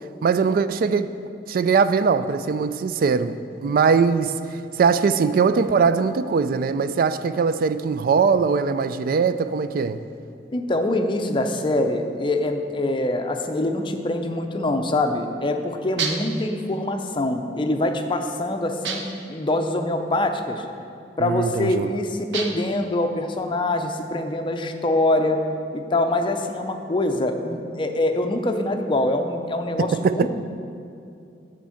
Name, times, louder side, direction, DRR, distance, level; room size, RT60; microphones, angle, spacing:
voice 1, 0.2-1.1 1.5-10.0 21.2-21.9 29.8-30.3, right 5 dB, 55° right, 0.3 m, -21 dB
voice 2, 10.5-19.0 19.3-20.6 21.2-25.4 25.7-30.3, left 1 dB, 30° left, 0.5 m, -24 dB
sound 1, 16.0-16.4 18.8-19.3 22.3-22.8, right 5 dB, 80° right, 0.8 m, -29 dB
8.9 x 4.5 x 7.1 m
head